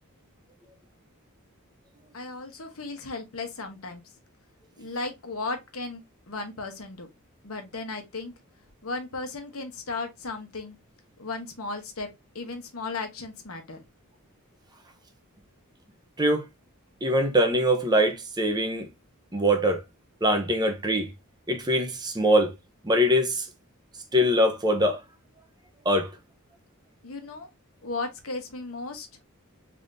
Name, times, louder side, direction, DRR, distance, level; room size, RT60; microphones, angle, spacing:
voice 1, 2.1-4.0 4.8-6.0 6.3-7.1 7.4-8.3 8.8-10.8 11.2-12.1 12.3-13.8 27.0-27.5 27.8-29.1, left 3 dB, 75° left, 1.1 m, -35 dB
voice 2, 17.0-18.9 19.3-19.8 20.2-21.1 21.5-22.5 22.8-23.5 24.1-25.0 25.8-26.1, equal, 20° right, 0.7 m, -23 dB
3.7 x 3.5 x 2.5 m
head